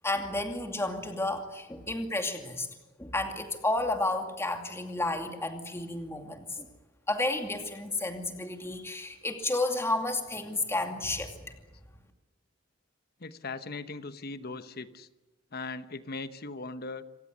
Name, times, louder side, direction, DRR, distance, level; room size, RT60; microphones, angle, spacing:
voice 1, 0.0-2.7 3.0-6.7 7.1-11.3, left 2 dB, 15° left, 5 dB, 2.5 m, -31 dB
voice 2, 13.2-15.1 15.5-17.0, left 3 dB, 50° left, 12 dB, 1.1 m, -39 dB
27.0 x 17.5 x 9.5 m, 1.2 s
head